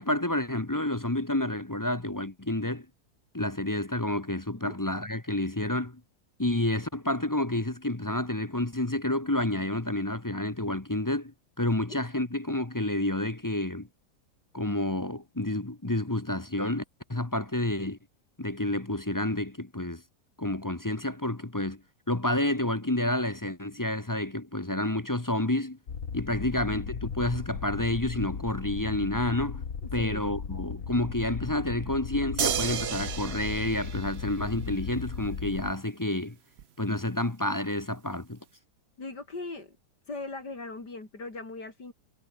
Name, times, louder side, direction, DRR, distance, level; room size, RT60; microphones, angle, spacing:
voice 1, 0.0-2.9 3.3-6.0 6.4-13.9 14.5-16.8 17.1-18.0 18.4-20.0 20.4-21.8 22.1-25.8 26.1-29.6 29.9-36.4 36.8-38.4, left 1 dB, 15° left, 1.0 m, -29 dB
sound 1, 25.9-35.7, left 6 dB, 55° left, 2.1 m, -37 dB
sound 2, 32.4-34.9 36.6-36.7, right 8 dB, 50° right, 0.9 m, -32 dB
voice 2, 39.0-39.8 40.1-41.9, left 3 dB, 85° left, 5.7 m, -39 dB
omnidirectional pair, 1.8 m